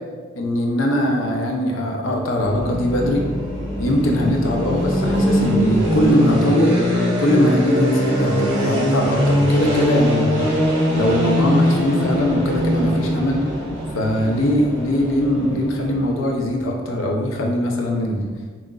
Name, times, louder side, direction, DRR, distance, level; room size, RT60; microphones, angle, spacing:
voice 1, 0.3-3.2 3.8-6.8 7.2-10.5 10.9-13.4 13.9-18.3, left 1 dB, 80° left, 1 dB, 0.6 m, -21 dB
sound 1, 2.4-16.3, equal, 80° right, 1.3 m, -21 dB
5.6 x 2.5 x 2.3 m, 1.5 s
head